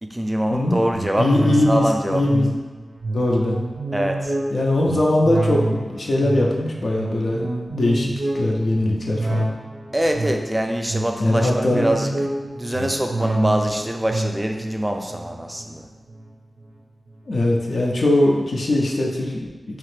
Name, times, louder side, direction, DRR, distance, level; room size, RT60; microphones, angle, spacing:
voice 1, 0.0-1.3 1.7-2.2 3.9-4.4 9.9-12.1 12.5-15.9, right 1 dB, 15° right, 3 dB, 0.3 m, -24 dB
sound 1, 0.9-16.7 17.1-17.2, right 2 dB, 75° right, 0.5 m, -28 dB
voice 2, 1.2-2.6 3.1-3.7 4.5-9.5 11.2-12.1 17.3-19.8, left 1 dB, 75° left, -2 dB, 0.4 m, -21 dB
2.9 x 2.5 x 3.2 m, 1.3 s
wide cardioid pair, 70°, 0 cm